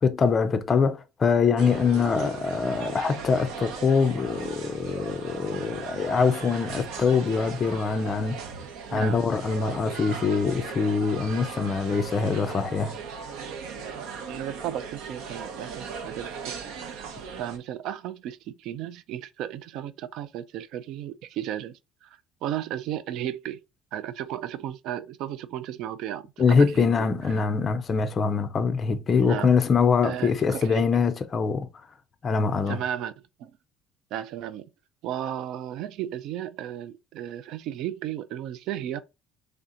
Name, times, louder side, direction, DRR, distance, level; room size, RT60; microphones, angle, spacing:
voice 1, 0.0-8.4 8.9-13.0 26.4-31.7 32.2-32.8, left 5 dB, 25° left, 0.4 m, -24 dB
sound 1, 1.6-17.6, right 5 dB, 85° right, 0.8 m, -38 dB
voice 2, 14.3-17.1 17.4-22.1 22.4-23.6 23.9-27.1 29.2-29.6 30.0-31.0 32.5-33.1 33.4-33.5 34.1-34.6 35.0-39.0, right 11 dB, 60° right, 0.4 m, -34 dB
3.3 x 2.8 x 3.6 m
cardioid pair, 160°, 0 cm